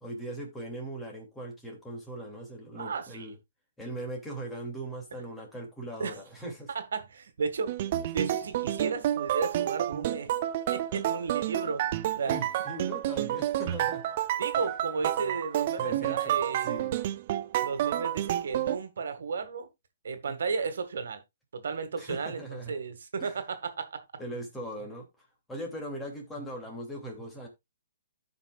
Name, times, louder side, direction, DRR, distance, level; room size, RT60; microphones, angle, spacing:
voice 1, 0.0-3.4 3.8-6.7 12.3-14.0 14.6-14.7 15.2-15.3 15.8-17.0 20.3-20.4 22.0-22.8 23.2-23.3 24.2-27.5, right 1 dB, 5° left, 2.7 m, -40 dB
voice 2, 2.8-3.3 6.0-6.1 6.7-7.7 8.1-10.3 10.7-12.4 14.4-16.9 17.6-19.7 20.0-21.2 21.5-24.0, right 5 dB, 75° right, 1.9 m, -34 dB
sound 1, 7.7-18.8, right 12 dB, 40° right, 0.6 m, -30 dB
15.5 x 5.5 x 2.4 m
hypercardioid pair, 160°, 0 cm